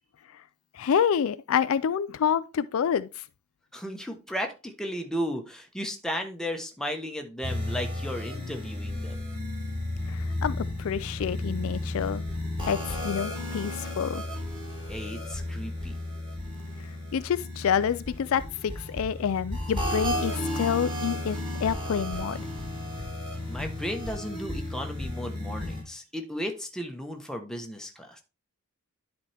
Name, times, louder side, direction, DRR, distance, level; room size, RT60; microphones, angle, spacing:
voice 1, 0.7-3.2 10.1-12.2 12.7-14.2 16.8-22.5, left 7 dB, 70° left, 0.4 m, -28 dB
voice 2, 3.7-9.2 14.9-16.0 23.5-28.2, equal, 5° left, 1.0 m, -35 dB
sound 1, 7.4-25.8, left 1 dB, 25° right, 3.4 m, -33 dB
10.5 x 4.3 x 3.4 m
head